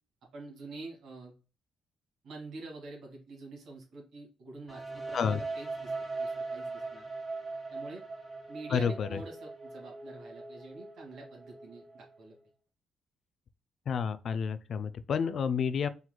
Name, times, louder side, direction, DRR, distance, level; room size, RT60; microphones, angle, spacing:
voice 1, 0.3-1.3 2.2-5.9 6.2-7.0 7.7-8.0 8.5-12.3, right 3 dB, 75° right, 2.1 m, -46 dB
sound 1, 4.7-12.4, right 3 dB, 10° right, 2.0 m, -40 dB
voice 2, 8.7-9.2 13.9-15.9, left 6 dB, 55° left, 0.4 m, -30 dB
4.5 x 4.0 x 2.2 m
cardioid pair, 90°, 0 cm